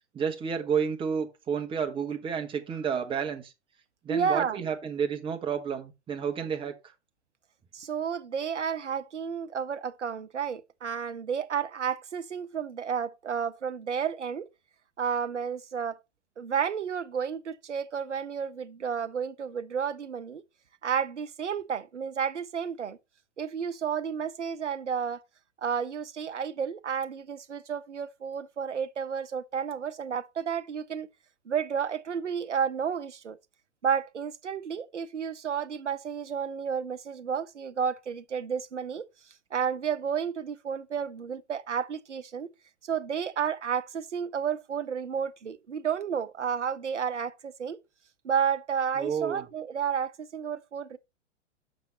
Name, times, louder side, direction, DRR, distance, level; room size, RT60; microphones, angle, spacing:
voice 1, 0.1-3.5 4.0-6.7 49.0-49.4, right 6 dB, 15° right, 1.1 m, -30 dB
voice 2, 4.1-4.6 7.7-14.5 15.0-16.0 16.4-20.4 20.8-23.0 23.4-25.2 25.6-31.1 31.5-33.4 33.8-39.1 39.5-42.5 42.8-47.8 48.2-51.0, right 7 dB, 80° right, 0.7 m, -31 dB
6.3 x 6.1 x 4.1 m
figure-of-eight pair, 105°, 35 cm